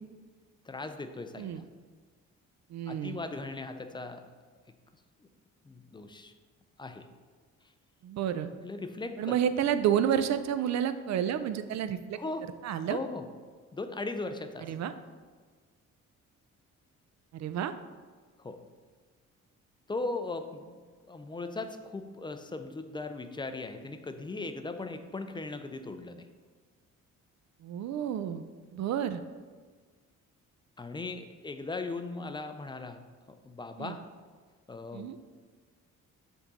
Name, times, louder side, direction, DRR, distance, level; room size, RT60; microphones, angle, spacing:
voice 1, 0.7-1.7 2.9-4.2 5.6-6.3 6.8-7.1 8.6-9.4 12.2-12.5 12.9-13.2 13.7-14.7 18.4-18.6 19.9-20.8 21.1-26.3 30.8-33.0 33.3-34.0 34.7-35.1, left 3 dB, 15° left, 8 dB, 0.4 m, -38 dB
voice 2, 2.7-3.2 8.0-8.5 9.2-12.2 12.6-13.0 14.7-14.9 17.3-17.7 27.6-28.4 28.7-29.2 33.8-34.0 34.9-35.2, right 9 dB, 65° right, 11 dB, 0.5 m, -30 dB
7.1 x 3.7 x 4.0 m, 1.5 s
cardioid pair, 90°, 30 cm